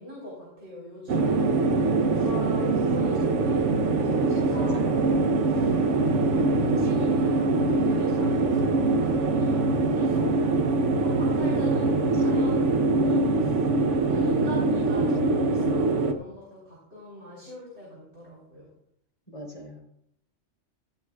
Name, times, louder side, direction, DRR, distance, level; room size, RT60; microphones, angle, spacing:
voice 1, 0.0-10.7 10.9-13.6 14.0-18.7, left 1 dB, 60° right, -5 dB, 4.3 m, -41 dB
sound 1, 1.1-16.1, right 3 dB, 80° right, 1.2 m, -23 dB
voice 2, 4.5-5.0 14.1-14.5 19.3-19.8, equal, 30° left, 0 dB, 3.5 m, -39 dB
16.0 x 12.0 x 2.3 m, 0.73 s
omnidirectional pair, 1.2 m